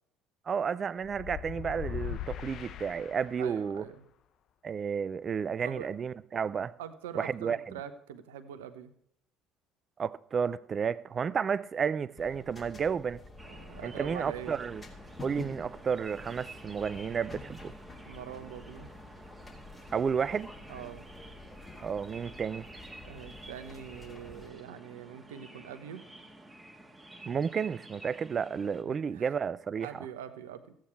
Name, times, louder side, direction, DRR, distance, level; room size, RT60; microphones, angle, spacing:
voice 1, 0.5-3.8 4.6-6.7 7.1-7.6 10.0-13.2 13.8-14.8 15.2-17.7 19.9-20.5 21.8-22.7 27.2-30.1, right 6 dB, 40° right, 0.5 m, -32 dB
sound 1, 1.0-3.7, left 11 dB, 55° left, 0.6 m, -40 dB
voice 2, 3.4-4.0 5.6-5.9 6.8-8.9 13.4-14.6 18.1-18.9 20.7-21.1 23.0-26.1 28.8-29.3 29.8-30.8, right 9 dB, 75° right, 0.9 m, -44 dB
sound 2, 12.2-24.5, left 3 dB, 25° left, 2.7 m, -49 dB
sound 3, 13.4-28.8, right 2 dB, 15° right, 1.6 m, -51 dB
14.5 x 9.0 x 4.7 m
hypercardioid pair, 60°, 0 cm